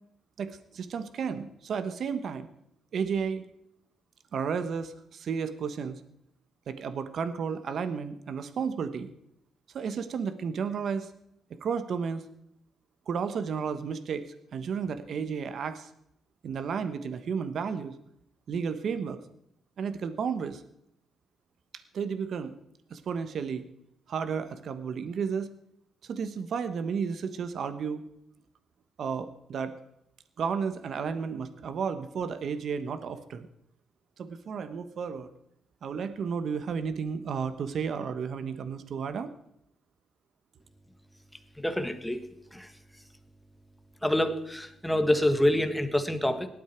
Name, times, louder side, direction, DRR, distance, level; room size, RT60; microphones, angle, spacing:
voice 1, 0.4-2.5 2.9-3.4 4.3-6.0 6.7-9.1 9.7-11.1 11.5-12.2 13.1-14.2 14.5-15.9 16.4-17.9 18.5-19.2 19.8-20.6 21.9-22.5 22.9-23.6 24.1-25.5 26.0-28.0 29.0-29.7 30.4-33.5 34.2-35.3 35.8-39.3, right 6 dB, 60° right, 11 dB, 1.2 m, -32 dB
voice 2, 41.6-42.2 42.5-42.7 44.0-46.5, left 1 dB, 5° left, 7 dB, 1.7 m, -26 dB
18.5 x 12.0 x 4.5 m, 0.76 s
cardioid pair, 115°, 0 cm